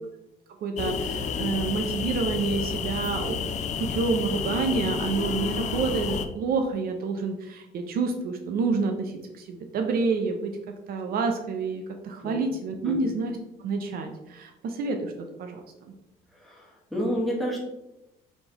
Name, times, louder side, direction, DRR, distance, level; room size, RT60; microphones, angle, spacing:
voice 1, 0.6-10.5 10.9-13.3 13.6-15.1 15.4-15.9, right 4 dB, 60° right, 4 dB, 0.6 m, -28 dB
sound 1, 0.8-6.3, left 6 dB, 45° left, 0.4 m, -30 dB
voice 2, 16.3-17.6, equal, ahead, -3 dB, 1.3 m, -30 dB
4.2 x 3.3 x 2.9 m, 0.92 s
cardioid pair, 110°, 17 cm